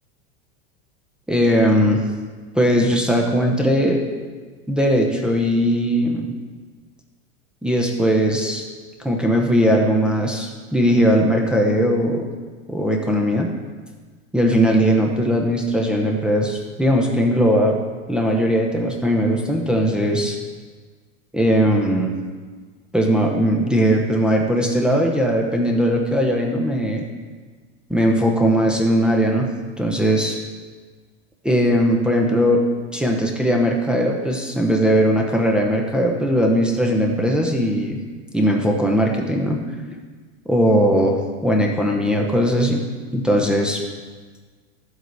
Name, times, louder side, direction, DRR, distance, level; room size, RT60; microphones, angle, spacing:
voice 1, 1.3-2.0 2.5-4.1 4.7-6.3 7.6-8.6 9.0-12.3 12.7-13.5 14.3-17.8 18.1-20.4 21.3-22.1 22.9-27.1 27.9-29.5 29.8-30.4 31.4-32.6 32.9-38.0 38.3-39.6 40.5-42.8 43.1-43.8, equal, 5° right, -1 dB, 0.9 m, -19 dB
12.0 x 7.9 x 4.0 m, 1.5 s
supercardioid pair, 140°, 34 cm